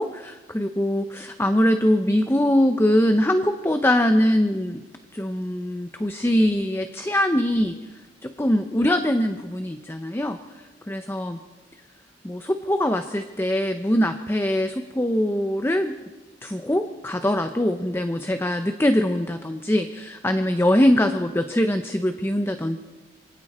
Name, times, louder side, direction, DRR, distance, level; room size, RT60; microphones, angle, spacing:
voice 1, 0.0-4.8 5.1-7.7 8.2-10.4 10.9-11.4 12.2-16.0 16.4-22.8, left 1 dB, 15° left, 8 dB, 0.7 m, -22 dB
27.0 x 22.5 x 4.3 m, 1.2 s
head